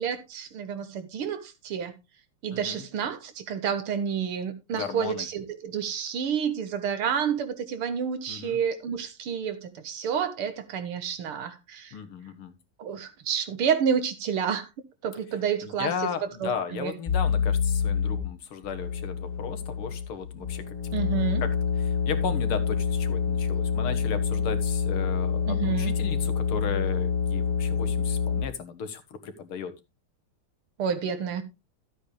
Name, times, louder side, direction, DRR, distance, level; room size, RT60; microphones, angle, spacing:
voice 1, 0.0-1.9 2.4-11.9 12.8-14.7 15.0-15.9 16.4-16.9 20.9-21.4 25.5-26.0 30.8-31.4, right 7 dB, 85° right, 2.3 m, -29 dB
voice 2, 2.5-2.9 4.7-5.3 8.3-8.6 11.9-12.5 15.6-20.7 21.4-21.5 21.8-29.7, left 6 dB, 80° left, 2.3 m, -35 dB
sound 1, 17.1-18.3 18.6-28.4, left 6 dB, 25° left, 0.7 m, -27 dB
13.0 x 8.2 x 3.3 m
omnidirectional pair, 2.4 m